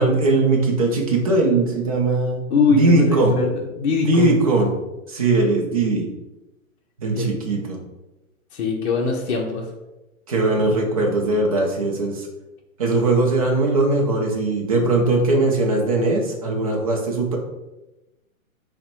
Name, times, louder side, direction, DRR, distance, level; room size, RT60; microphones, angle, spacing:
voice 1, 0.0-2.4 2.7-3.3 4.0-4.7 5.1-6.1 7.0-7.8 10.3-12.3 12.8-17.4, right 2 dB, 30° right, 0 dB, 0.4 m, -20 dB
voice 2, 2.5-4.3 7.2-7.3 8.5-9.6, left 4 dB, 50° left, 0 dB, 0.6 m, -21 dB
3.4 x 2.1 x 4.2 m, 1.0 s
hypercardioid pair, 150°, 42 cm